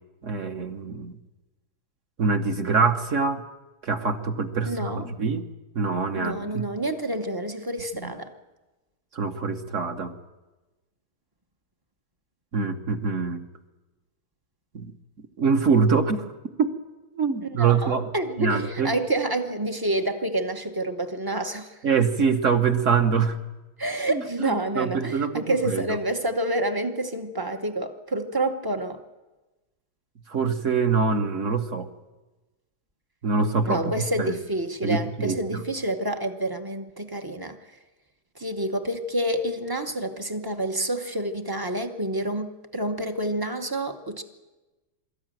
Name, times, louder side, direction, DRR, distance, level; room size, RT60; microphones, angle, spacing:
voice 1, 0.2-1.2 2.2-3.4 3.8-5.5 5.7-6.7 8.0-8.1 9.1-10.1 12.5-13.4 14.7-14.9 15.4-16.3 16.6-16.7 17.1-18.1 18.4-18.9 21.8-23.4 24.1-25.8 30.3-31.9 33.2-33.8 34.2-34.4 34.8-35.6, right 5 dB, 50° right, 6 dB, 1.1 m, -24 dB
voice 2, 4.6-5.0 6.2-8.3 17.4-21.8 23.8-29.0 33.7-37.6 38.3-44.2, right 1 dB, 25° right, 6 dB, 0.4 m, -28 dB
23.0 x 13.5 x 9.1 m, 1.1 s
omnidirectional pair, 2.2 m